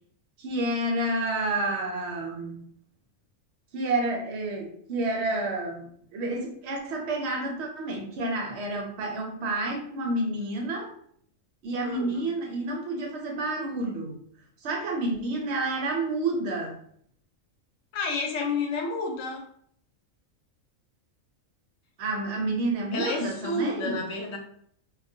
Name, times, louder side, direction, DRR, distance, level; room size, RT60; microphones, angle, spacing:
voice 1, 0.4-2.7 3.7-10.9 11.6-14.2 14.6-16.8 22.0-24.1, right 2 dB, 65° right, 1 dB, 0.8 m, -29 dB
voice 2, 11.8-12.3 17.9-19.5 22.9-24.4, left 3 dB, 75° left, 2 dB, 0.9 m, -30 dB
2.2 x 2.1 x 2.6 m, 0.64 s
omnidirectional pair, 1.4 m